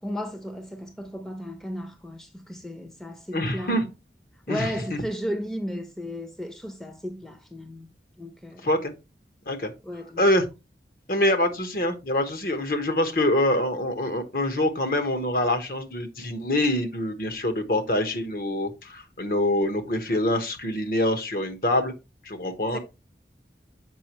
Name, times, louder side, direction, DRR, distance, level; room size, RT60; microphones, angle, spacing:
voice 1, 0.0-3.9 4.5-7.9 8.2-8.7 9.8-10.2 22.7-22.8, equal, 5° left, 0.7 m, -34 dB
voice 2, 3.3-3.8 4.5-4.7 8.6-8.9 9.5-9.7 10.2-10.5 11.1-21.9 22.2-22.8, left 1 dB, 55° left, 1.2 m, -25 dB
7.5 x 5.3 x 3.0 m
head